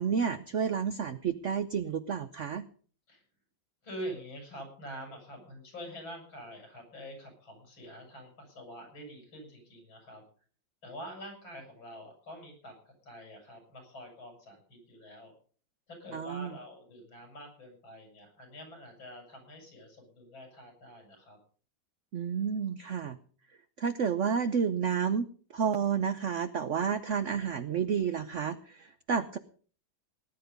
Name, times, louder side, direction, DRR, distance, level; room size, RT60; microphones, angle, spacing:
voice 1, 0.0-2.6 16.1-16.5 22.1-23.2 23.8-25.2 25.5-29.4, right 7 dB, 55° right, 11 dB, 0.8 m, -30 dB
voice 2, 3.8-10.2 10.8-12.7 13.0-15.3 15.9-21.4, equal, 85° left, 2 dB, 7.4 m, -46 dB
18.5 x 10.5 x 5.3 m, 0.43 s
omnidirectional pair, 2.1 m